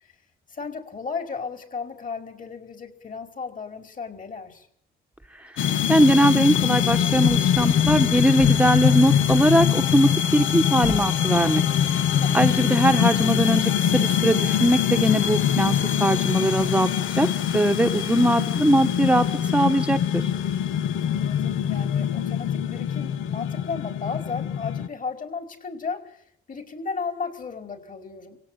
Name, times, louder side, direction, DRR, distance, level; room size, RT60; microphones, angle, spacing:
voice 1, 0.5-4.7 12.2-12.5 21.0-26.2 26.5-28.4, left 5 dB, 40° left, 6 dB, 5.1 m, -34 dB
sound 1, 5.6-24.9, left 9 dB, 80° left, 1.5 m, -23 dB
voice 2, 5.9-11.6 12.3-17.3 17.5-19.3 19.5-20.3, right 1 dB, 5° right, 6 dB, 1.2 m, -21 dB
26.0 x 17.0 x 9.1 m, 0.69 s
cardioid pair, 90°, 20 cm